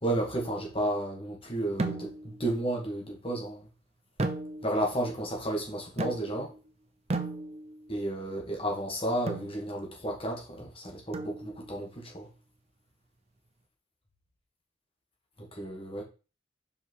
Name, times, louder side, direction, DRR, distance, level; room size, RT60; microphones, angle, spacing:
voice 1, 0.0-3.7 4.6-6.5 7.9-12.3 15.4-16.0, right 1 dB, 30° left, 2.2 m, -32 dB
sound 1, 1.8-2.4 4.2-4.9 6.0-6.6 7.1-7.9 9.3-9.6 11.1-11.7, right 2 dB, 30° right, 0.7 m, -34 dB
5.8 x 4.8 x 4.7 m
head